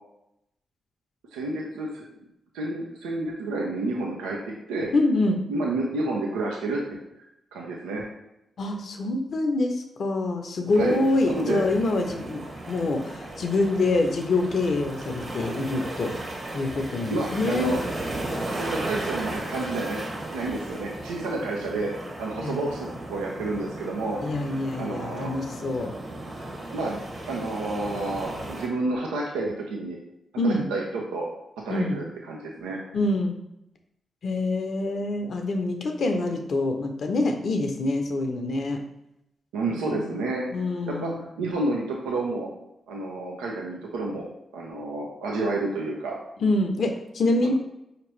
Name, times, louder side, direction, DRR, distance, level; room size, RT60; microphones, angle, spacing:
voice 1, 1.3-2.1 2.5-4.4 4.7-4.9 5.5-7.0 7.5-8.0 10.7-11.0 11.3-11.6 17.1-17.8 18.5-20.0 20.3-21.9 22.2-24.2 24.8-25.3 26.7-27.0 27.3-30.0 30.4-30.8 31.1-31.3 31.7-32.8 39.5-40.4 40.9-41.1 41.4-42.5 42.9-44.2 44.5-46.2 47.4-47.5, right 2 dB, 90° right, -1 dB, 0.5 m, -29 dB
voice 2, 4.9-5.4 8.6-16.1 16.5-17.7 22.4-22.7 24.2-25.9 30.4-30.7 31.7-32.0 32.9-33.3 34.2-38.8 39.7-40.2 40.5-41.2 46.4-47.5, left 2 dB, 65° left, 5 dB, 0.6 m, -26 dB
sound 1, 10.7-28.7, right 1 dB, 45° right, 1.5 m, -36 dB
5.0 x 2.9 x 3.1 m, 0.85 s
supercardioid pair, 40°, 0 cm